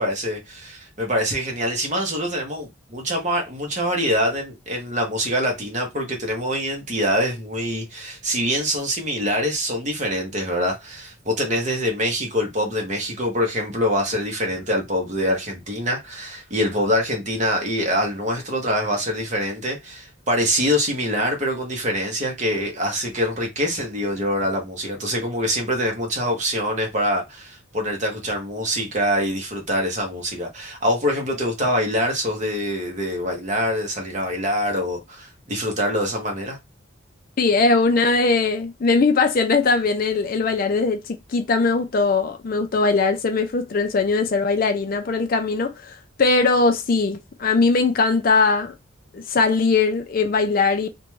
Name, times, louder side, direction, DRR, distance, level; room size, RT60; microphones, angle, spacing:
voice 1, 0.0-36.6, equal, 35° right, 0.8 m, -24 dB
voice 2, 37.4-48.7 49.1-50.9, left 4 dB, 45° left, 0.4 m, -20 dB
2.5 x 2.2 x 3.0 m
head